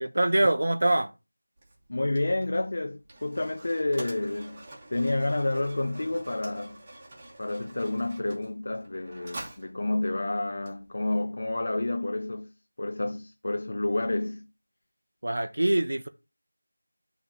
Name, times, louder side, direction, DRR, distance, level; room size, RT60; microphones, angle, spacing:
voice 1, 0.0-1.1 15.2-16.1, right 1 dB, 60° right, 0.7 m, -24 dB
Mechanisms, 1.6-11.2, right 1 dB, 25° right, 1.3 m, -47 dB
voice 2, 1.9-4.6 4.9-6.8 7.4-14.5, left 2 dB, 50° left, 0.4 m, -29 dB
9.9 x 3.5 x 4.1 m
figure-of-eight pair, 170°, 0 cm